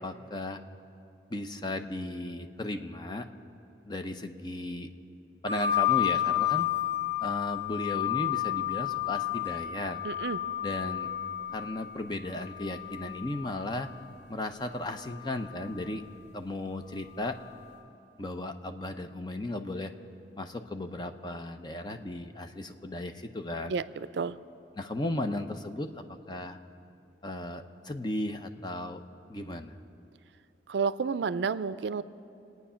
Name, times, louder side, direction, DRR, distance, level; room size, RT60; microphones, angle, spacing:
voice 1, 0.0-0.6 1.3-3.3 3.9-4.9 5.4-6.7 7.2-10.0 10.6-11.1 11.5-13.9 14.3-16.0 16.3-17.4 18.2-19.9 20.4-23.7 24.8-25.9 26.3-26.6 27.2-29.0 29.3-29.8, left 1 dB, 25° left, 7 dB, 0.7 m, -35 dB
sound 1, 5.5-13.9 14.9-15.7, left 13 dB, 80° left, 5.0 m, -31 dB
voice 2, 10.0-10.4 23.7-24.4 30.7-32.0, right 5 dB, 75° right, 15 dB, 0.4 m, -30 dB
27.0 x 9.4 x 5.6 m, 2.6 s
head